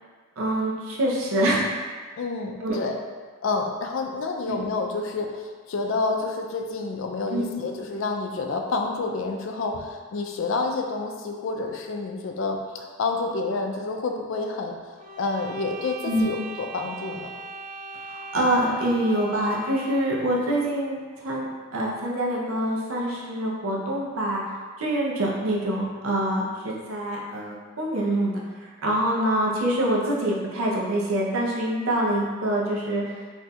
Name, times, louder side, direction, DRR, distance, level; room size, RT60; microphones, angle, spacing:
voice 1, 0.4-1.6 2.6-2.8 4.5-4.6 7.3-7.4 16.0-16.3 18.1-24.4 24.8-33.1, right 1 dB, 90° right, -3 dB, 0.6 m, -25 dB
voice 2, 2.2-3.0 3.4-14.7 15.2-17.3, left 3 dB, 65° left, 3 dB, 0.4 m, -29 dB
sound 1, 15.0-20.3, right 3 dB, 40° right, 0.5 m, -39 dB
2.6 x 2.3 x 4.1 m, 1.5 s
head